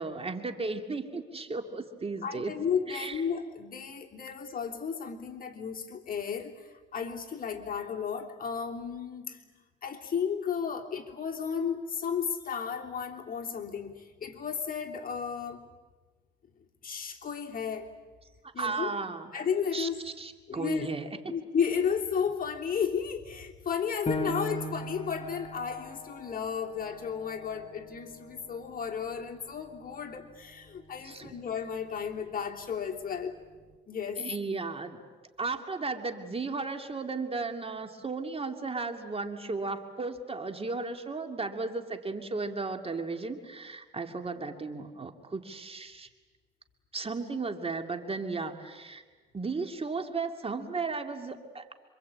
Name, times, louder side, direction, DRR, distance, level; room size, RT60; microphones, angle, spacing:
voice 1, 0.0-2.5 2.9-3.2 18.6-19.3 19.7-21.1 31.0-31.4 34.2-35.0 35.4-46.1 46.9-49.0 49.3-51.7, right 4 dB, 30° right, 6 dB, 2.4 m, -35 dB
voice 2, 2.2-9.4 9.8-15.6 16.8-17.9 18.5-18.9 19.3-20.0 20.5-20.9 21.3-33.4 33.9-34.2, left 7 dB, 45° left, 1 dB, 3.2 m, -33 dB
Piano, 24.1-29.2 29.7-29.8 30.4-30.9, left 1 dB, 30° left, 3.2 m, -39 dB
27.5 x 25.0 x 8.7 m, 1.3 s
cardioid pair, 90°, 20 cm